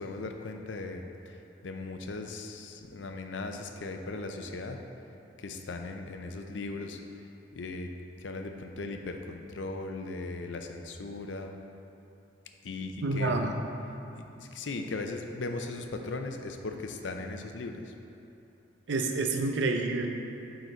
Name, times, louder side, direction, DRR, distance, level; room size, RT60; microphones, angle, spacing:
voice 1, 0.0-4.8 5.4-7.9 8.2-11.6 12.6-13.5 14.1-17.9, left 3 dB, 85° left, 4 dB, 0.5 m, -38 dB
voice 2, 13.0-13.5 18.9-20.1, right 3 dB, 80° right, 4 dB, 0.6 m, -28 dB
9.1 x 3.9 x 4.0 m, 3.0 s
head